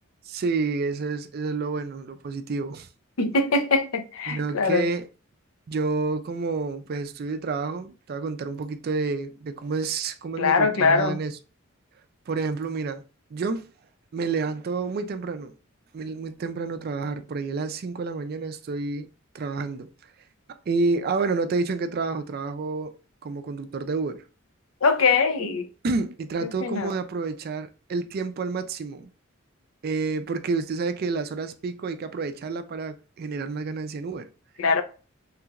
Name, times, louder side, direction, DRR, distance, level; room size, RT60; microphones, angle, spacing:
voice 1, 0.3-2.9 4.3-5.1 5.7-11.3 12.3-13.0 13.3-13.7 14.1-15.5 15.9-19.1 19.3-19.9 20.7-24.2 25.8-29.1 29.8-34.3, right 4 dB, 50° right, 0.4 m, -29 dB
voice 2, 3.2-4.9 10.4-11.2 24.8-25.7 26.6-26.9 34.6-34.8, left 4 dB, 85° left, 0.6 m, -22 dB
3.2 x 2.9 x 2.4 m
head